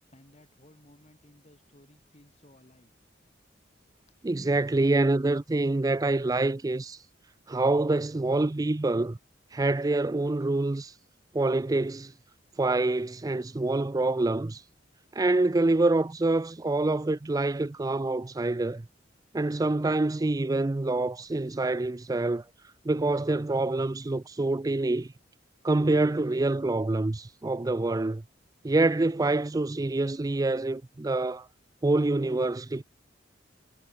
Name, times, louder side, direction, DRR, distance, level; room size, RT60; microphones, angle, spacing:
voice 1, 0.0-2.9 3.8-3.9, left 1 dB, 35° left, 4.2 m, -58 dB
voice 2, 4.2-7.0 7.5-9.2 9.5-10.9 11.3-12.1 12.6-14.6 15.1-18.8 19.3-22.4 22.9-25.1 25.6-28.2 28.6-31.5 31.8-32.8, right 2 dB, 20° right, 0.4 m, -26 dB
head